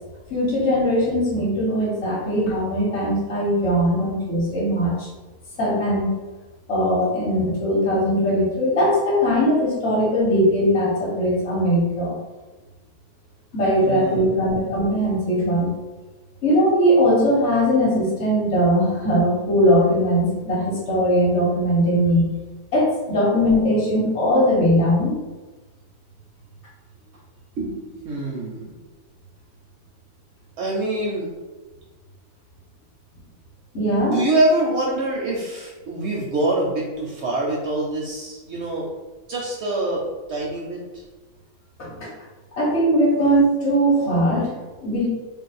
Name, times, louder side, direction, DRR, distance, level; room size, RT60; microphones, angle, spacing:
voice 1, 0.3-5.1 5.6-6.1 6.7-12.2 13.5-15.7 16.4-22.3 22.7-25.2 33.7-34.2 41.8-42.1 42.5-45.1, equal, 55° left, -4 dB, 1.0 m, -20 dB
voice 2, 13.8-14.5 27.6-28.8 30.6-31.3 33.9-38.9 39.3-41.0, right 2 dB, 65° right, -3 dB, 0.7 m, -25 dB
2.6 x 2.1 x 4.0 m, 1.2 s
omnidirectional pair, 1.5 m